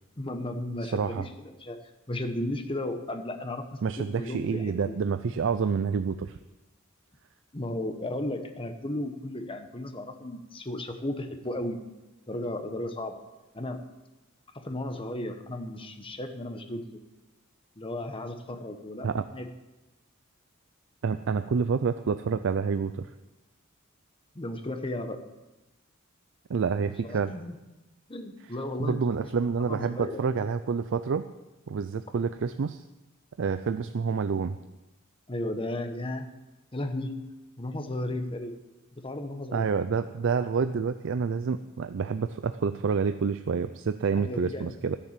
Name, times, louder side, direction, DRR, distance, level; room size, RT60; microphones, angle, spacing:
voice 1, 0.2-1.8 2.1-5.0 7.5-11.8 12.3-13.2 13.5-13.8 14.5-17.0 17.8-19.5 24.3-25.3 27.0-27.5 28.1-29.3 29.7-30.2 35.3-36.3 36.7-37.2 37.6-38.6 39.0-39.7 44.2-44.8, left 1 dB, 25° left, 6 dB, 1.1 m, -34 dB
voice 2, 0.8-1.2 3.8-6.4 19.0-19.2 21.0-23.1 26.5-27.3 28.8-31.3 31.7-32.8 33.4-34.6 39.5-45.0, right 5 dB, 60° right, 11 dB, 0.4 m, -28 dB
13.5 x 7.0 x 7.3 m, 1.1 s
head